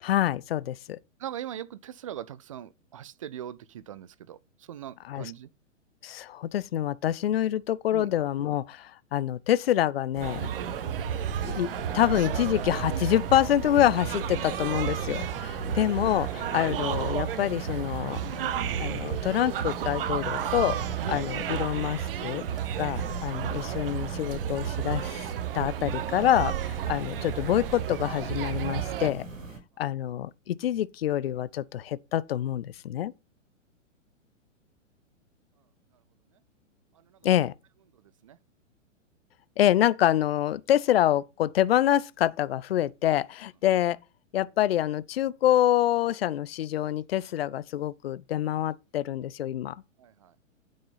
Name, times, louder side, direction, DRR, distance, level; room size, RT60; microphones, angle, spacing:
voice 1, 0.0-1.0 5.0-5.3 6.0-10.5 11.4-18.2 18.8-20.8 21.1-22.4 22.8-25.3 25.5-29.3 29.8-33.1 37.2-37.5 39.6-44.0 44.3-49.7, left 12 dB, 50° left, 0.5 m, -26 dB
voice 2, 1.2-4.4 4.7-5.5 7.9-8.1 10.5-10.7 38.2-38.4 50.0-50.3, right 10 dB, 25° right, 0.4 m, -40 dB
sound 1, 10.1-29.6, right 2 dB, 75° right, 3.1 m, -39 dB
sound 2, 10.2-29.1, right 10 dB, 45° right, 0.9 m, -32 dB
8.9 x 5.4 x 5.4 m
figure-of-eight pair, 110°, 39 cm